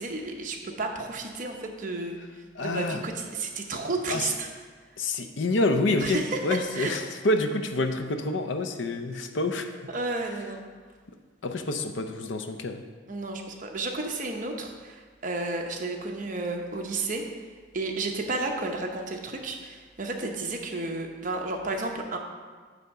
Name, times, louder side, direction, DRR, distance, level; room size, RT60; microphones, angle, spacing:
voice 1, 0.0-2.2 2.6-4.5 6.0-7.0 9.9-10.6 13.1-17.2 17.7-22.2, right 3 dB, 40° right, 2 dB, 0.9 m, -32 dB
voice 2, 2.6-3.0 4.1-4.3 5.0-9.7 11.4-12.8, left 2 dB, 70° left, 7 dB, 0.6 m, -27 dB
9.1 x 3.6 x 6.6 m, 1.5 s
head